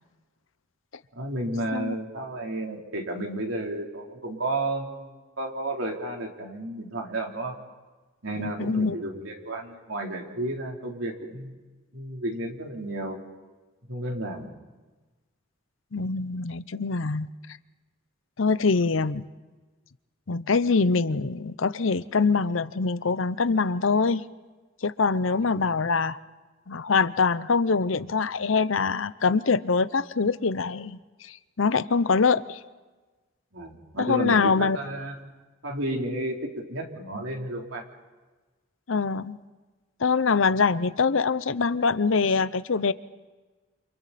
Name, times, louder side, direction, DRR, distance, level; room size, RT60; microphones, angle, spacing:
voice 1, 1.1-7.6 8.2-11.6 11.9-13.2 13.9-14.5 25.3-25.4 33.5-35.1 35.6-37.8, right 1 dB, 80° right, 0 dB, 3.7 m, -32 dB
voice 2, 8.4-9.0 15.9-17.3 18.4-19.3 20.3-24.2 24.8-26.2 26.7-32.6 34.0-34.8 38.9-39.4 40.0-42.9, left 4 dB, 80° left, 15 dB, 0.8 m, -24 dB
29.0 x 27.0 x 4.3 m, 1.2 s
head